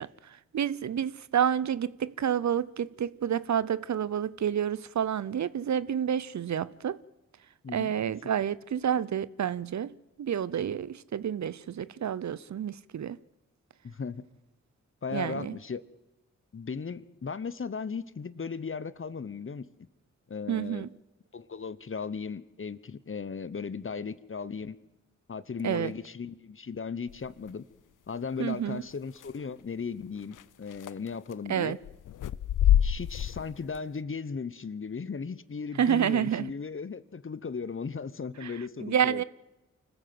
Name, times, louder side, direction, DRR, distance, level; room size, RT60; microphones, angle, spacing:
voice 1, 0.0-7.0 7.7-13.2 15.1-15.5 20.5-20.9 25.6-25.9 28.4-28.8 31.5-31.8 35.8-36.5 38.4-38.5 38.8-39.2, right 9 dB, 65° right, 0.7 m, -29 dB
voice 2, 7.6-8.1 13.8-14.2 15.0-15.8 16.5-19.7 20.3-20.9 21.3-24.8 25.3-27.6 28.1-31.8 32.8-39.2, left 5 dB, 40° left, 1.0 m, -37 dB
sound 1, 27.1-27.5 29.2-29.3 30.3-30.4 30.7-31.3 31.8-33.8, left 11 dB, 80° left, 0.6 m, -26 dB
25.0 x 14.0 x 7.8 m
cardioid pair, 40°, 31 cm